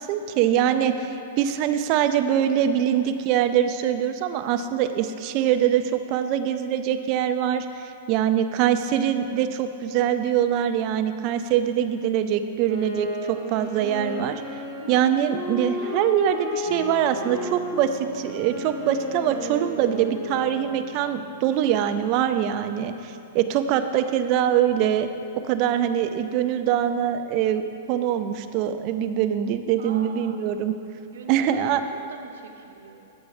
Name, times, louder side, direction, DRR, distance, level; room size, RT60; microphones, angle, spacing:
voice 1, 0.0-7.7 8.1-14.4 14.9-25.1 25.5-27.6 27.9-30.7 31.3-31.8, right 10 dB, 30° right, 9 dB, 0.4 m, -23 dB
Wind instrument woodwind instrument, 12.6-20.9, left 1 dB, 25° left, 1.1 m, -33 dB
Harp, 16.6-26.3 26.5-26.6 26.8-27.1, right 7 dB, 5° right, 1.0 m, -48 dB
voice 2, 29.8-30.4 31.1-31.6 31.9-33.1, right 5 dB, 80° right, 3 dB, 0.9 m, -43 dB
8.3 x 6.0 x 4.8 m, 2.8 s
supercardioid pair, 170°, 0 cm